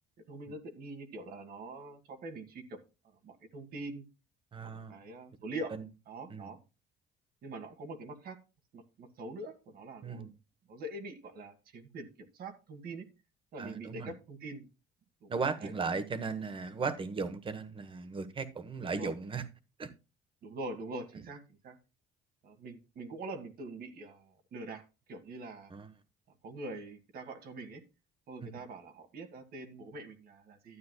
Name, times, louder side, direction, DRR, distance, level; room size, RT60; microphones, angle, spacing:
voice 1, 0.3-2.8 3.0-4.1 4.6-5.8 6.1-6.6 7.4-8.4 8.7-10.3 10.7-13.1 13.5-14.7 15.2-15.3 15.6-15.7 18.9-19.1 20.4-21.8 22.4-25.7 26.4-27.8 28.3-30.8, right 2 dB, 60° right, 1.8 m, -44 dB
voice 2, 4.5-5.0 6.3-6.5 10.0-10.3 13.6-14.1 15.3-19.4 19.8-19.9 25.7-25.9 28.4-28.6, right 4 dB, 30° right, 1.1 m, -36 dB
12.5 x 9.3 x 2.3 m
cardioid pair, 110°, 17 cm